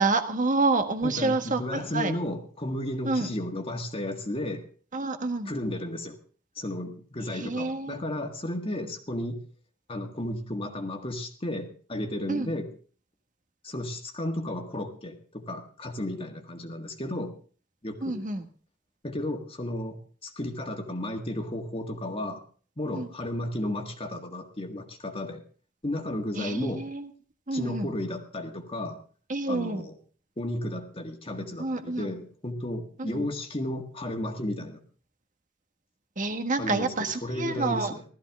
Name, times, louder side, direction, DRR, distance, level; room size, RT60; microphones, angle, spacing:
voice 1, 0.0-2.1 3.0-3.3 4.9-5.5 7.3-8.0 12.3-12.5 18.0-18.5 22.9-23.1 26.4-27.1 27.5-27.9 29.3-29.8 31.6-32.1 33.0-33.2 36.2-37.9, right 3 dB, 40° right, 7 dB, 1.6 m, -28 dB
voice 2, 1.0-4.7 5.5-6.2 6.6-9.4 9.9-12.7 13.6-17.4 17.8-18.2 19.0-22.4 22.8-25.4 25.8-26.9 27.5-29.0 29.5-30.0 30.4-34.8 36.6-38.0, left 1 dB, 30° left, 4 dB, 1.7 m, -33 dB
16.0 x 13.5 x 3.6 m, 0.41 s
head